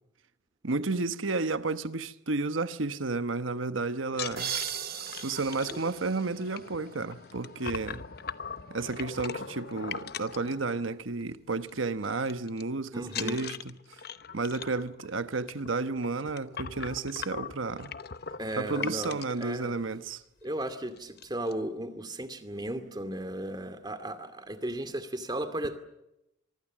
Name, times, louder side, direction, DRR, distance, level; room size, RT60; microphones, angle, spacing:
voice 1, 0.6-4.5 5.2-8.0 8.7-13.5 14.3-17.9 18.6-20.2, right 3 dB, 85° right, 1.1 m, -32 dB
sound 1, 4.1-11.2 11.5-11.8 12.0-12.6 13.1-19.4 20.1-20.2 20.5-20.7 21.0-21.5, left 6 dB, 55° left, 0.9 m, -41 dB
sound 2, 4.4-7.1, right 9 dB, 50° right, 2.2 m, -38 dB
voice 2, 12.9-13.4 18.4-19.8 20.4-25.8, right 1 dB, 20° right, 2.4 m, -35 dB
25.0 x 24.0 x 7.5 m
head